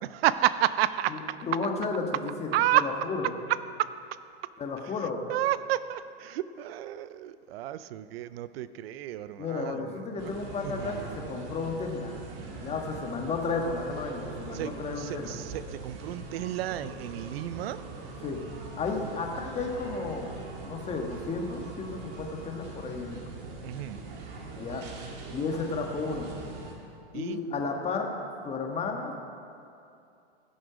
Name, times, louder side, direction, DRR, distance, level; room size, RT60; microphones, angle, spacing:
voice 1, 0.0-1.4 2.5-2.9 3.5-3.9 5.3-10.3 10.6-11.3 14.5-17.8 23.6-24.0 27.1-27.4, right 13 dB, 70° right, 15 dB, 0.5 m, -31 dB
voice 2, 1.4-2.5 2.8-3.3 4.6-5.2 9.4-12.2 12.6-15.4 18.2-18.4 18.8-20.3 20.6-23.3 24.6-24.8 25.3-26.3 27.1-28.1 28.4-29.1, left 4 dB, 20° left, 2 dB, 1.4 m, -33 dB
sound 1, 10.2-26.7, right 3 dB, 55° right, 2.0 m, -42 dB
16.5 x 6.3 x 4.9 m, 2.6 s
hypercardioid pair, 125°, 32 cm